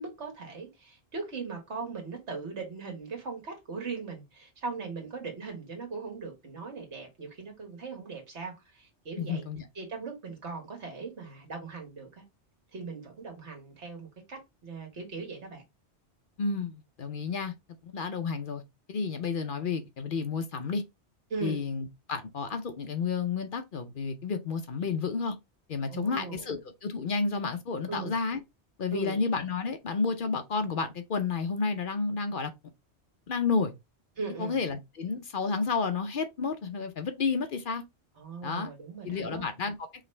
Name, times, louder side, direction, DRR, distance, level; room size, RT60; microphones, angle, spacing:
voice 1, 0.0-9.5 9.8-12.2 12.7-15.6 21.3-21.6 25.9-26.5 27.9-28.1 28.9-29.2 34.2-34.6 38.2-39.4, right 4 dB, 75° right, 1.9 m, -39 dB
voice 2, 9.2-9.6 16.4-17.5 17.8-18.6 18.9-20.8 21.4-25.4 25.7-28.4 28.8-32.5 33.3-33.7 34.4-37.8 38.4-38.7 39.0-39.9, left 5 dB, 55° left, 0.7 m, -31 dB
4.9 x 3.0 x 3.2 m
omnidirectional pair, 1.2 m